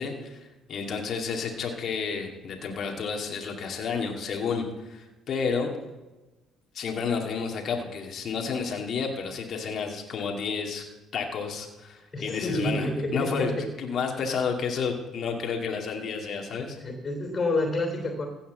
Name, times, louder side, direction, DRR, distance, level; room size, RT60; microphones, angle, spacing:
voice 1, 0.0-5.7 6.7-10.9 11.1-16.8, left 5 dB, 55° left, 2 dB, 2.3 m, -31 dB
voice 2, 12.1-13.6 16.6-18.3, left 1 dB, 40° left, 4 dB, 3.2 m, -29 dB
16.0 x 5.7 x 7.7 m, 1.1 s
hypercardioid pair, 60°, 0 cm